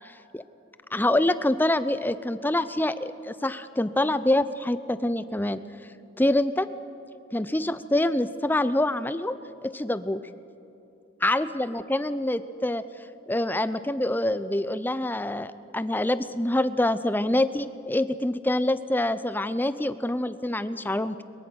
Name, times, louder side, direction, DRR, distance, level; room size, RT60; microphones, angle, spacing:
voice 1, 0.9-5.6 6.2-6.7 7.3-9.4 9.6-10.2 11.2-12.8 13.3-21.2, left 1 dB, 10° left, 13 dB, 0.6 m, -26 dB
22.5 x 22.5 x 6.4 m, 2.8 s
head